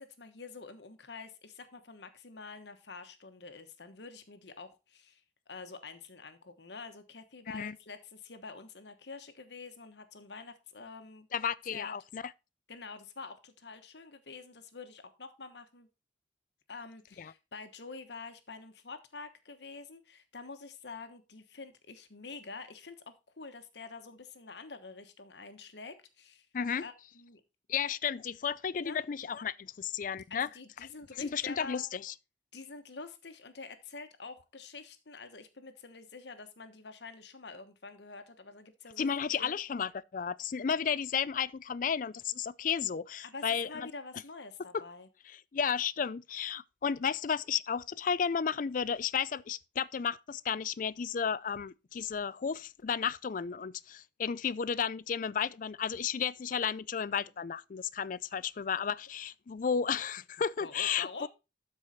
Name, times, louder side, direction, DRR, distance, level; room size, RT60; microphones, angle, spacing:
voice 1, 0.0-5.2 5.5-11.3 11.7-11.9 12.7-15.9 16.7-26.5 26.8-27.4 28.8-29.0 30.3-31.9 32.5-39.6 43.2-45.1 60.6-61.3, left 4 dB, 70° left, 1.2 m, -47 dB
voice 2, 11.3-12.2 17.2-17.3 26.5-26.8 27.7-30.5 31.2-32.1 39.0-43.9 44.7-44.8 45.3-61.3, left 7 dB, 45° left, 0.4 m, -33 dB
12.5 x 4.8 x 4.2 m
head